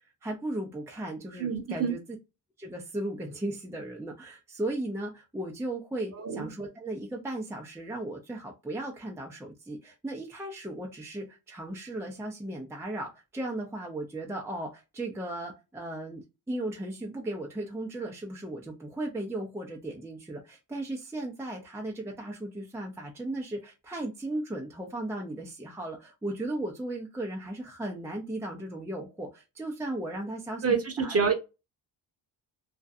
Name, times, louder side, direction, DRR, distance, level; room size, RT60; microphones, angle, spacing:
voice 1, 0.2-2.0 2.6-30.6 31.0-31.2, right 1 dB, 5° right, 0 dB, 0.6 m, -36 dB
voice 2, 1.4-1.9 6.1-6.5 30.6-31.3, right 5 dB, 30° right, 4 dB, 1.0 m, -27 dB
2.5 x 2.2 x 2.5 m, 0.25 s
supercardioid pair, 70°, 48 cm